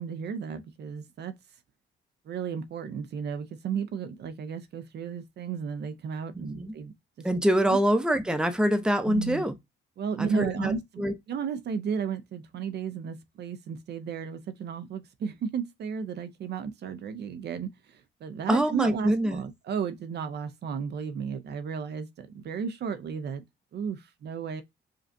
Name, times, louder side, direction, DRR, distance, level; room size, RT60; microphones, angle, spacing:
voice 1, 0.0-1.4 2.3-7.3 7.7-7.8 9.1-9.4 10.0-23.4 23.7-24.6, right 6 dB, 55° right, 0.6 m, -34 dB
voice 2, 6.3-6.7 7.2-9.5 10.2-11.1 18.5-19.4, equal, 5° right, 0.7 m, -25 dB
5.1 x 2.3 x 2.6 m
cardioid pair, 90°, 20 cm